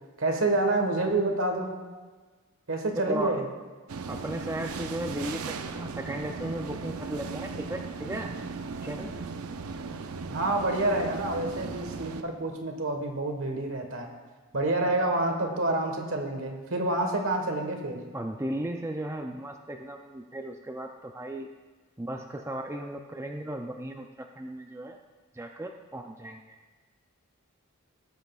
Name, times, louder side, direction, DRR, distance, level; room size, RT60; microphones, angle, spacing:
voice 1, 0.2-1.7 2.7-3.4 10.3-14.1 14.5-18.0, right 2 dB, 65° right, 3 dB, 1.3 m, -28 dB
voice 2, 2.9-3.4 4.1-8.3 8.8-9.2 18.1-21.5 22.0-25.0 25.3-26.6, right 1 dB, 10° right, 3 dB, 0.4 m, -36 dB
sound 1, 3.9-12.2, right 4 dB, 80° right, 0.5 m, -37 dB
17.5 x 7.8 x 2.3 m, 1.4 s
head